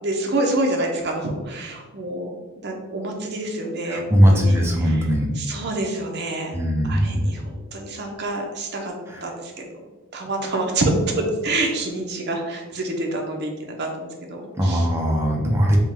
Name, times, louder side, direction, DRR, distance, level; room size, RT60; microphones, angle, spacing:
voice 1, 0.0-5.1 5.3-6.6 6.8-7.4 7.7-8.9 9.2-9.7 10.1-14.9, right 2 dB, 50° right, 1 dB, 0.7 m, -27 dB
voice 2, 3.9-5.3 6.5-7.3 9.1-9.2 14.6-15.8, equal, 10° right, -1 dB, 0.5 m, -19 dB
3.5 x 2.2 x 4.4 m, 1.3 s
head